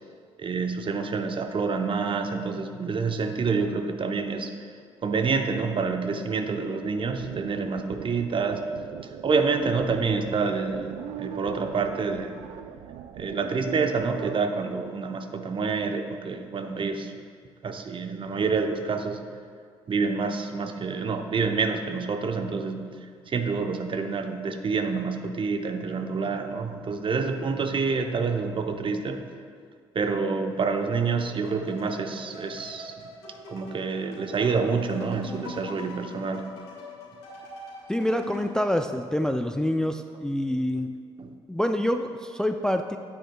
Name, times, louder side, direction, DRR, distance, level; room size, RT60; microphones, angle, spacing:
voice 1, 0.4-4.5 5.0-8.6 9.2-12.3 13.2-17.1 17.6-19.2 19.9-29.2 29.9-32.9 33.5-36.4 41.2-41.3, right 4 dB, 40° right, 6 dB, 0.7 m, -27 dB
sound 1, 6.8-14.4, right 9 dB, 65° right, 0.4 m, -40 dB
sound 2, 31.4-38.6, left 1 dB, 80° left, 2.1 m, -42 dB
voice 2, 37.9-40.9 41.5-43.0, left 1 dB, 5° left, 7 dB, 0.4 m, -26 dB
9.6 x 9.0 x 2.3 m, 2.1 s
hypercardioid pair, 50°, 13 cm